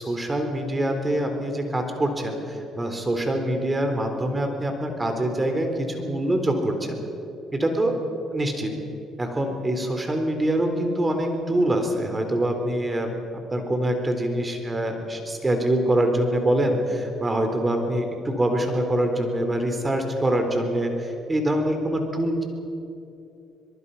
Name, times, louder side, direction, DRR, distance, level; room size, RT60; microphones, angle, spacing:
voice 1, 0.0-7.0 7.5-8.0 8.3-8.7 9.2-22.4, right 1 dB, 20° right, 5 dB, 3.8 m, -25 dB
23.5 x 22.5 x 5.6 m, 2.8 s
supercardioid pair, 80°, 0 cm